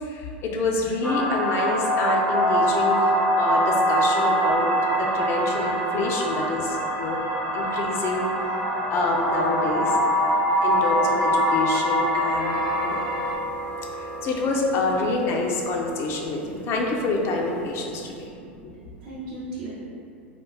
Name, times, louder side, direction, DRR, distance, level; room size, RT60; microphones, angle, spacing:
voice 1, 0.0-7.2 7.5-8.3 8.9-10.0 10.6-13.0 14.0-18.3, left 2 dB, 40° left, 0 dB, 0.5 m, -27 dB
sound 1, 1.0-13.3, equal, 5° right, 0.7 m, -23 dB
voice 2, 7.4-8.0 8.6-8.7 9.6-9.7 10.4-10.6 12.3-13.7 14.1-14.3 15.9-16.7 17.9-19.7, right 2 dB, 55° right, -8 dB, 0.7 m, -43 dB
sound 2, 12.3-18.3, right 1 dB, 80° left, 0.9 m, -37 dB
3.7 x 2.4 x 2.3 m, 2.6 s
hypercardioid pair, 90°, 6 cm